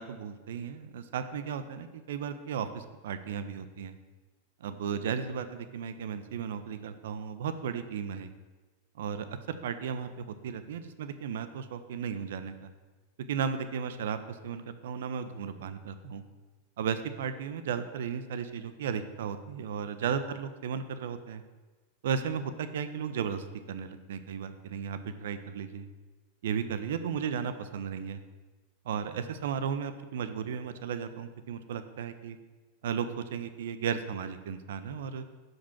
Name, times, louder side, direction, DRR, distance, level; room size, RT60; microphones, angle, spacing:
voice 1, 0.0-4.0 4.6-8.3 9.0-12.7 13.3-16.2 16.8-21.4 22.0-25.9 26.4-28.2 28.8-32.4 32.8-35.2, right 7 dB, 60° right, 10 dB, 0.5 m, -35 dB
6.0 x 5.2 x 5.9 m, 1.3 s
figure-of-eight pair, 90°, 0 cm